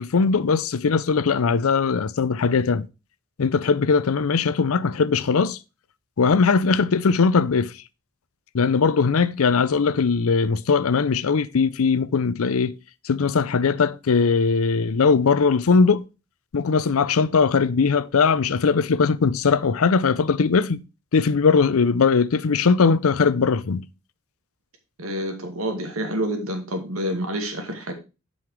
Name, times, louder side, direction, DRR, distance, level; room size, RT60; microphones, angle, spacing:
voice 1, 0.0-2.9 3.4-5.6 6.2-7.7 8.5-12.7 13.0-16.0 16.5-20.8 21.1-23.8, left 5 dB, 85° left, 0.5 m, -20 dB
voice 2, 25.0-27.9, right 1 dB, 85° right, 2.1 m, -28 dB
7.7 x 5.6 x 4.8 m
head